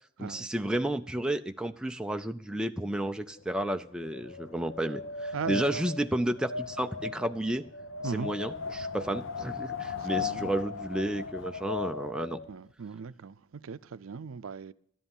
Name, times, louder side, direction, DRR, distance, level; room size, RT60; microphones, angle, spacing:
voice 1, 0.2-7.6 8.1-12.4, right 1 dB, 5° right, 0.4 m, -32 dB
Wind, 3.4-12.6, left 4 dB, 75° left, 0.9 m, -37 dB
voice 2, 5.3-5.9 8.0-8.3 10.0-10.5 12.5-14.7, right 5 dB, 90° right, 0.5 m, -38 dB
13.0 x 10.5 x 5.5 m
head